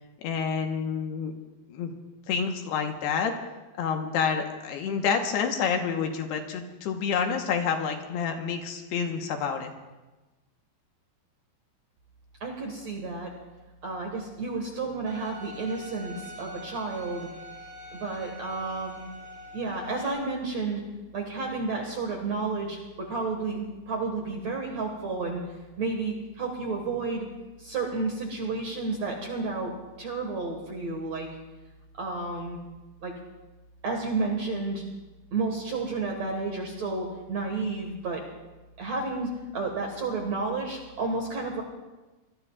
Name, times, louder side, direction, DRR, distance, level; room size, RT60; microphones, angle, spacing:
voice 1, 0.2-1.4 1.7-1.9 2.3-3.3 3.7-9.7, left 6 dB, 75° left, 4 dB, 3.0 m, -28 dB
voice 2, 12.4-13.3 13.8-17.3 17.9-19.0 19.5-20.8 21.1-25.4 25.8-27.3 27.6-29.7 30.0-31.3 32.0-32.6 33.0-33.1 33.8-34.8 35.3-38.2 38.8-41.6, right 3 dB, 55° right, 1 dB, 2.1 m, -31 dB
Bowed string instrument, 15.1-20.1, left 1 dB, 5° left, 2.5 m, -44 dB
25.0 x 20.0 x 2.4 m, 1.1 s
omnidirectional pair, 5.0 m